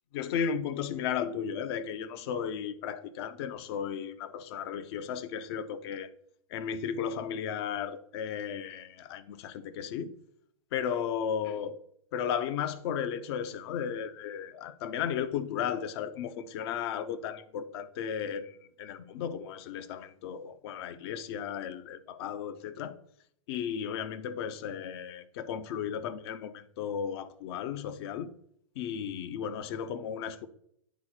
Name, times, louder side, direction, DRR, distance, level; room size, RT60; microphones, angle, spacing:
voice 1, 0.1-6.1 6.5-10.1 10.7-11.8 12.1-23.0 23.5-28.3 28.7-30.5, left 8 dB, 45° left, 0.7 m, -35 dB
9.3 x 3.9 x 4.4 m
figure-of-eight pair, 105°, 18 cm